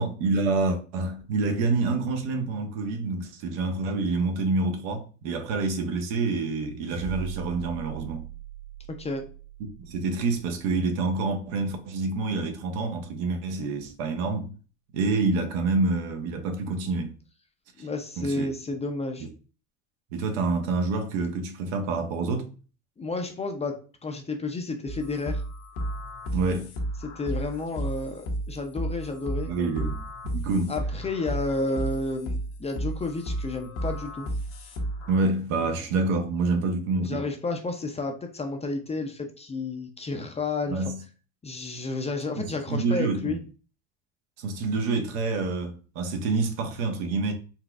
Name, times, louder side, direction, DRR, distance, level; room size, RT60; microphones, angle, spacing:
voice 1, 0.0-8.3 9.8-14.5 14.9-17.1 17.8-17.9 18.2-18.5 19.2-19.3 20.1-22.5 26.3-26.7 29.5-30.0 30.3-30.7 35.1-37.2 40.7-41.0 42.4-43.4 44.4-47.3, right 3 dB, 70° right, 0.9 m, -27 dB
sound 1, 6.9-11.5, right 10 dB, 90° right, 1.4 m, -41 dB
voice 2, 8.9-9.3 17.8-19.3 23.0-25.4 27.0-29.5 30.7-34.3 37.0-40.8 41.4-43.4, left 3 dB, 15° left, 0.5 m, -31 dB
sound 2, 24.9-35.2, right 1 dB, 70° left, 1.0 m, -33 dB
4.1 x 2.3 x 2.3 m
hypercardioid pair, 90°, 38 cm